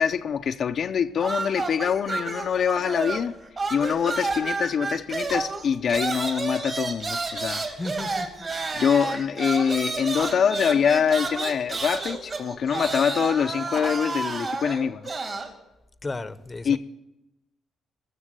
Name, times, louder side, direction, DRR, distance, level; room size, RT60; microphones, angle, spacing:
voice 1, 0.0-3.3 3.7-7.6 8.8-15.1 16.6-16.8, left 7 dB, 55° left, 0.6 m, -24 dB
sound 1, 1.2-3.3 3.6-15.5, right 3 dB, 40° right, 3.1 m, -31 dB
voice 2, 7.8-8.5 16.0-16.8, left 2 dB, 25° left, 0.8 m, -34 dB
20.0 x 7.0 x 7.5 m
cardioid pair, 90°, 0 cm